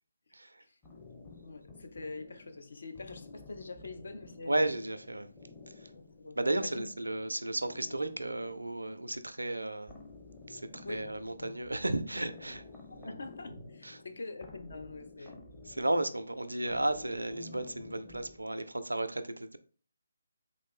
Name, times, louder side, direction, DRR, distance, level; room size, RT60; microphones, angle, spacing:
sound 1, 0.8-18.9, left 3 dB, 15° left, 0.7 m, -52 dB
voice 1, 1.4-4.7 5.9-6.9 10.8-11.1 13.0-15.4, left 3 dB, 60° left, 0.6 m, -44 dB
voice 2, 4.5-5.3 6.4-9.9 10.5-12.6 12.9-13.1 13.8-14.0 15.7-19.6, right 1 dB, 75° right, 0.4 m, -33 dB
3.7 x 2.5 x 3.6 m
figure-of-eight pair, 145°, 0 cm